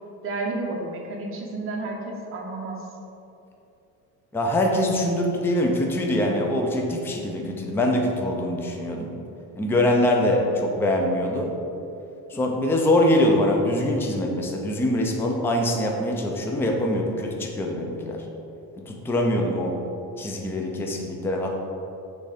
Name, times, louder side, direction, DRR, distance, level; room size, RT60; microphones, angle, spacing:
voice 1, 0.2-2.9, right 2 dB, 35° right, -1 dB, 1.0 m, -31 dB
voice 2, 4.3-9.1 9.6-11.5 12.3-18.2 18.8-19.8 20.2-21.5, left 1 dB, 5° left, 1 dB, 0.4 m, -23 dB
6.5 x 3.4 x 4.9 m, 2.8 s
cardioid pair, 160°, 36 cm